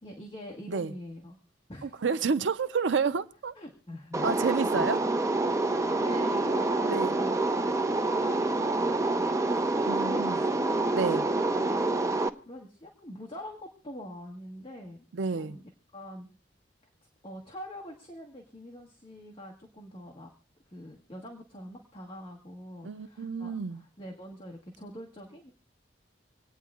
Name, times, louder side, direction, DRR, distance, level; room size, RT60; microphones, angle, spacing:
voice 1, 0.0-1.4 1.7-2.0 3.5-4.9 5.8-11.8 12.4-15.1 15.3-15.6 15.9-16.3 17.2-20.3 20.7-25.5, equal, 30° left, 1.4 m, -44 dB
voice 2, 1.8-3.5 4.2-5.0 6.9-7.2 9.8-10.4 10.9-11.3 15.1-15.6 22.8-23.8, right 5 dB, 75° right, 0.5 m, -29 dB
sound 1, 4.1-12.3, right 2 dB, 15° right, 0.5 m, -27 dB
27.0 x 9.2 x 2.4 m
head